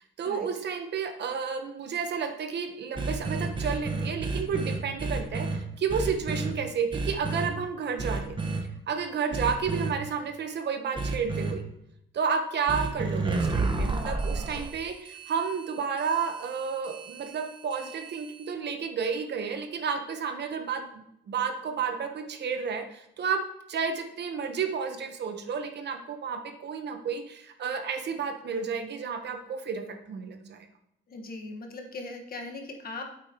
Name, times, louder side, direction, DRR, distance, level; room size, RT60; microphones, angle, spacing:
voice 1, 0.0-8.4 8.9-11.6 12.1-23.4 23.7-30.6, right 6 dB, 60° right, 6 dB, 1.1 m, -31 dB
sound 1, 3.0-5.6 5.9-6.5 6.9-7.5 8.0-8.6 9.3-9.9 11.0-11.5 12.7-18.5, right 3 dB, 25° right, 1.3 m, -31 dB
voice 2, 31.1-33.0, left 3 dB, 50° left, 3 dB, 1.5 m, -39 dB
8.7 x 8.3 x 3.0 m, 0.78 s
cardioid pair, 90°, 20 cm